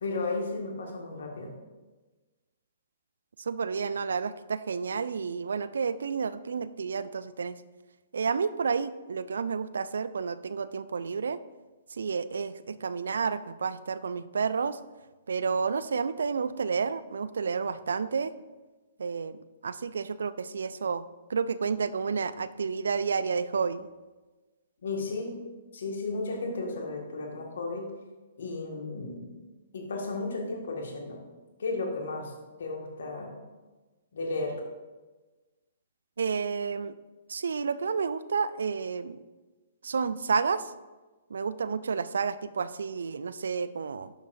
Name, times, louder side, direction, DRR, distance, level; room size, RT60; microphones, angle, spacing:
voice 1, 0.0-1.5 24.8-25.3 25.7-27.9 28.4-29.4 29.7-31.2 31.6-32.3 32.6-33.4 34.1-34.5, left 3 dB, 65° left, 1 dB, 1.8 m, -34 dB
voice 2, 3.4-7.6 8.1-11.4 11.9-14.8 15.3-18.3 19.0-23.9 36.2-37.0 37.3-39.2 39.8-40.7 41.3-44.1, right 5 dB, 70° right, 14 dB, 0.4 m, -30 dB
11.5 x 6.8 x 2.6 m, 1.2 s
figure-of-eight pair, 120°, 0 cm